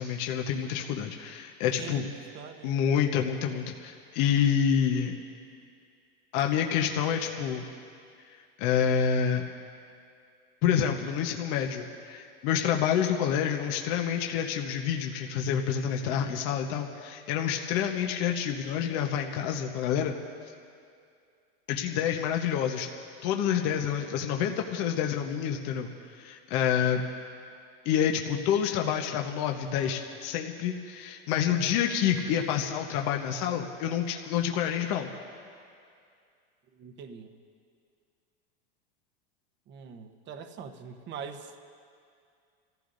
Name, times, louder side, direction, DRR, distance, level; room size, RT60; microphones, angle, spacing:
voice 1, 0.0-2.1 2.6-5.1 6.3-7.6 8.6-9.4 10.6-20.1 21.7-22.9 23.2-25.9 26.1-27.0 27.8-35.1, left 8 dB, 60° left, 3 dB, 1.1 m, -28 dB
voice 2, 1.6-2.1 2.3-2.8 16.0-16.5 36.8-37.4 39.7-41.6, right 6 dB, 40° right, 7 dB, 1.0 m, -43 dB
29.0 x 15.0 x 2.6 m, 2.3 s
supercardioid pair, 120°, 29 cm